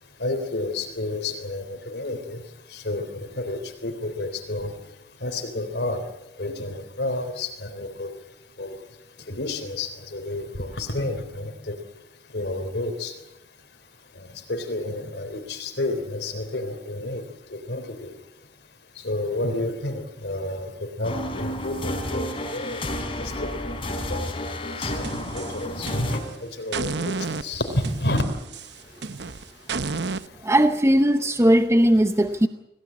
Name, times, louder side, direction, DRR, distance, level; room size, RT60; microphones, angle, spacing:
voice 1, 0.2-2.4 2.7-4.7 5.2-6.0 6.4-8.1 8.6-8.8 9.3-11.8 12.3-13.1 14.2-17.2 17.5-18.1 19.0-23.7 24.1-28.2, left 2 dB, 65° left, 6 dB, 3.6 m, -30 dB
sound 1, 21.0-26.2, left 1 dB, 30° left, 4.4 m, -31 dB
sound 2, 24.9-26.3 26.7-30.3, right 4 dB, 70° right, 0.9 m, -32 dB
voice 2, 30.4-32.5, right 1 dB, 15° right, 9 dB, 0.8 m, -18 dB
27.0 x 17.5 x 8.6 m, 0.89 s
head